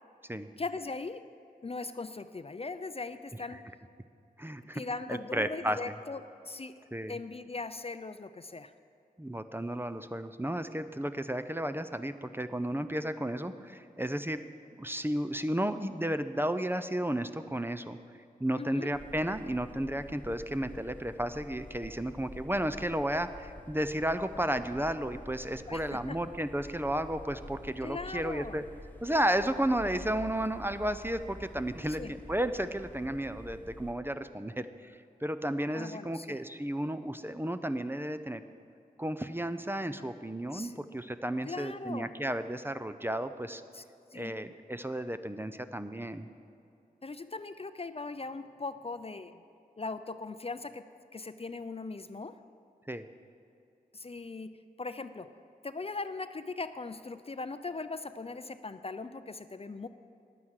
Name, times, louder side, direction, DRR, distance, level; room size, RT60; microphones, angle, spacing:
voice 1, 0.6-1.3 1.6-3.6 4.7-6.8 7.1-8.7 18.6-18.9 25.7-26.2 27.8-28.6 31.9-32.1 35.7-36.4 40.5-40.8 41.4-42.1 43.7-43.8 44.1-44.3 47.0-49.4 49.8-52.4 53.9-54.5 54.8-55.3 55.6-59.9, left 3 dB, 40° left, 11 dB, 0.5 m, -39 dB
voice 2, 4.4-4.8 5.1-5.9 6.9-7.2 9.2-14.4 14.8-18.0 18.4-28.6 29.0-34.9 35.2-38.4 39.0-43.6 44.1-46.3 52.9-53.0, right 1 dB, 15° right, 10 dB, 0.6 m, -33 dB
sound 1, 18.9-33.9, left 1 dB, 10° left, 1.1 m, -49 dB
11.0 x 9.4 x 6.5 m, 2.6 s
cardioid pair, 40°, 16 cm